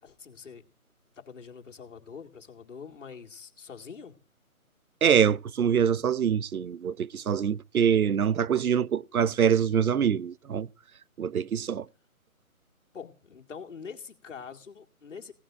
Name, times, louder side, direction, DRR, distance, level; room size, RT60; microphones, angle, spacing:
voice 1, 0.0-0.7 1.2-4.2 12.9-15.3, left 6 dB, 55° left, 2.4 m, -44 dB
voice 2, 5.0-10.7 11.2-11.9, right 8 dB, 80° right, 0.7 m, -24 dB
17.0 x 15.5 x 2.5 m
figure-of-eight pair, 165°, 43 cm